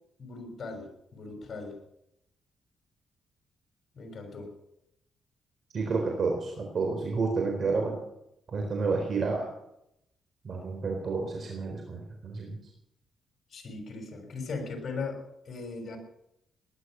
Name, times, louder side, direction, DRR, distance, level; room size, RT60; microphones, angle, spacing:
voice 1, 0.2-1.8 4.0-4.6 13.5-16.0, left 4 dB, 50° left, 4 dB, 5.9 m, -39 dB
voice 2, 5.7-8.0 8.5-9.5 10.4-12.6, right 4 dB, 55° right, 2 dB, 4.0 m, -30 dB
19.0 x 11.5 x 6.3 m, 0.79 s
cardioid pair, 75°, 0 cm